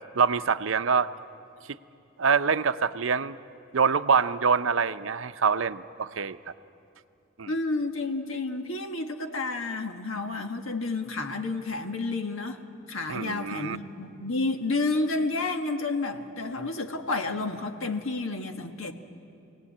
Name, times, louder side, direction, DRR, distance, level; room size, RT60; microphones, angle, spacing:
voice 1, 0.1-1.1 2.2-3.4 3.7-6.4 7.4-7.5 13.1-13.8, right 5 dB, 70° right, 11 dB, 0.6 m, -25 dB
voice 2, 7.5-12.6 12.9-18.9, left 3 dB, 80° left, 5 dB, 1.5 m, -30 dB
26.0 x 18.5 x 8.5 m, 2.6 s
head